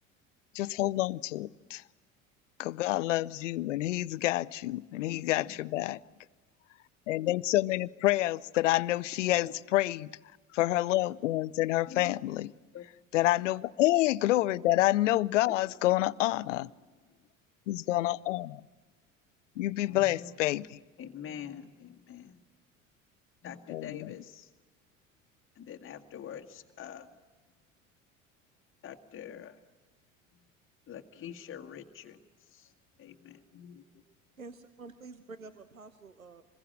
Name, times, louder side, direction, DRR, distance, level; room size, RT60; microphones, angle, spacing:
voice 1, 0.5-1.8 2.6-6.0 7.1-10.1 10.5-12.5 13.1-16.7 17.7-18.6 19.6-20.7 23.7-23.9, left 16 dB, 65° left, 0.7 m, -28 dB
voice 2, 5.1-5.6 6.0-6.1 9.4-9.5 11.9-12.1 12.7-12.9 15.5-15.8 16.4-17.3 19.9-20.7 21.0-22.4 23.4-24.5 25.5-27.2 28.8-29.6 30.3-30.4 30.9-32.7 33.0-33.9, left 9 dB, 30° left, 1.7 m, -46 dB
voice 3, 34.4-36.4, right 3 dB, 85° right, 1.0 m, -48 dB
26.0 x 21.5 x 8.8 m
figure-of-eight pair, 65°, 40 cm